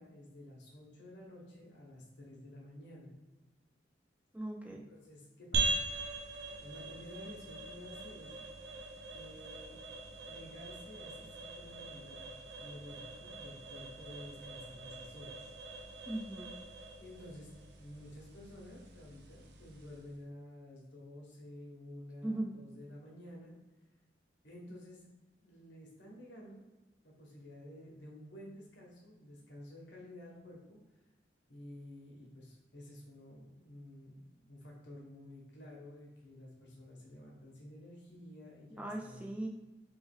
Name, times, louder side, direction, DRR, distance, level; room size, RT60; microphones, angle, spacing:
voice 1, 0.0-3.2 4.7-5.8 6.1-6.2 6.6-8.3 9.1-9.8 10.2-15.5 17.0-17.5 17.8-23.6 24.4-25.1 25.4-26.6 27.0-30.8 31.5-39.4, left 1 dB, 75° left, -2 dB, 1.2 m, -52 dB
voice 2, 4.3-4.8 16.1-16.6 22.2-22.6 38.8-39.5, right 1 dB, 5° right, 1 dB, 0.3 m, -39 dB
sound 1, 5.5-20.1, right 2 dB, 65° right, 0.6 m, -42 dB
3.4 x 3.0 x 3.6 m, 1.1 s
head